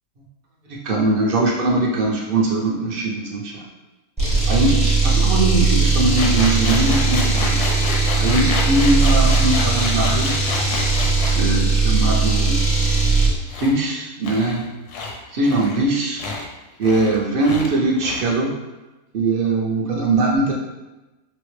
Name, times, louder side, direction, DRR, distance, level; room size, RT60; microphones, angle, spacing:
voice 1, 0.6-3.7 4.5-7.6 8.2-10.4 11.3-12.6 13.6-14.6 15.3-16.2 16.8-18.6 19.1-20.5, right 2 dB, 55° right, -2 dB, 0.6 m, -21 dB
sound 1, 4.2-13.4, right 4 dB, 5° right, 0.6 m, -18 dB
sound 2, 6.2-11.4 13.5-13.7 14.2-14.6 14.9-15.1 15.4-15.9 16.2-16.5 16.8-17.2 17.4-17.7 17.9-18.4, left 3 dB, 80° left, 1.1 m, -28 dB
4.1 x 2.0 x 3.2 m, 1.1 s
omnidirectional pair, 1.6 m